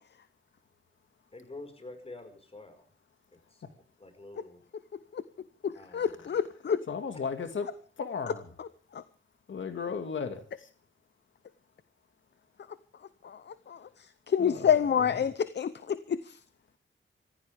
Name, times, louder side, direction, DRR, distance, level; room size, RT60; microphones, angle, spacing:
voice 1, 1.3-2.9 3.3-3.6 4.0-4.6 5.7-6.4, left 2 dB, 30° left, 7 dB, 5.0 m, -48 dB
voice 2, 5.6-6.8 8.9-9.0 13.2-13.4 13.7-13.8 14.3-16.3, left 8 dB, 60° left, 14 dB, 0.8 m, -28 dB
voice 3, 6.9-7.7 8.0-8.5 9.5-10.4 14.4-14.7 15.0-15.1, left 5 dB, 90° left, 7 dB, 2.0 m, -35 dB
25.0 x 15.5 x 3.5 m, 0.39 s
wide cardioid pair, 140°, 20 cm